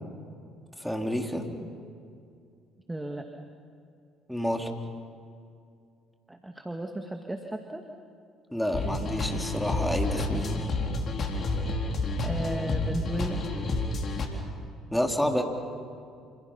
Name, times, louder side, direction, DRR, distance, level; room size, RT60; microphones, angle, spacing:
voice 1, 0.8-1.5 4.3-4.7 8.5-10.5 14.9-15.4, equal, 5° left, 2 dB, 3.7 m, -29 dB
voice 2, 2.9-3.2 6.3-7.8 12.2-13.4, right 1 dB, 10° right, 4 dB, 2.2 m, -34 dB
sound 1, 8.7-14.3, left 2 dB, 45° left, 3.6 m, -30 dB
28.5 x 27.0 x 5.8 m, 2.3 s
hypercardioid pair, 55°, 0 cm